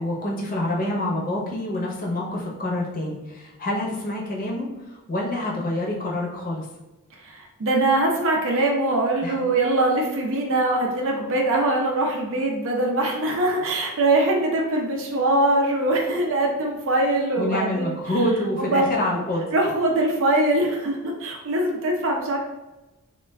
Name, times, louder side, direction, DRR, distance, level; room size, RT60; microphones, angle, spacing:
voice 1, 0.0-6.7 9.2-9.3 17.4-19.4, left 1 dB, 40° left, -2 dB, 0.6 m, -27 dB
voice 2, 7.2-18.0 18.6-18.8 19.5-22.4, right 2 dB, 60° right, 0 dB, 0.5 m, -22 dB
2.2 x 2.2 x 3.3 m, 1.0 s
head